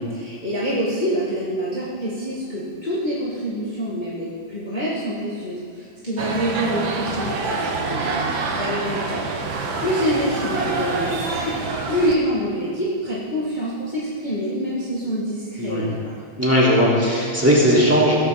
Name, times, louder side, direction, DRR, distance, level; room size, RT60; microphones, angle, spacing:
voice 1, 0.0-8.1 8.5-9.3 9.8-11.5 11.8-16.1, equal, 15° left, -8 dB, 1.5 m, -26 dB
sound 1, 6.2-12.1, right 3 dB, 80° right, 1.0 m, -26 dB
voice 2, 16.4-18.1, equal, 5° right, -7 dB, 3.7 m, -17 dB
17.5 x 15.0 x 4.2 m, 2.3 s
omnidirectional pair, 4.1 m